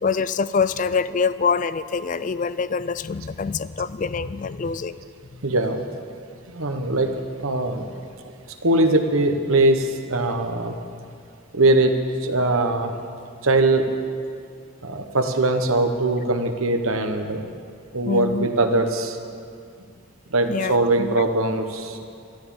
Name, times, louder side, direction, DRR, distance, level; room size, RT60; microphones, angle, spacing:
voice 1, 0.0-5.0 18.1-18.5 20.4-21.2, left 5 dB, 35° left, 15 dB, 0.3 m, -25 dB
voice 2, 5.4-5.8 6.5-7.9 8.2-10.8 11.5-11.9 12.2-12.9 13.4-13.9 14.8-17.5 17.9-19.2 20.3-22.0, right 2 dB, 75° right, 6 dB, 1.2 m, -21 dB
13.0 x 12.0 x 7.2 m, 2.3 s
head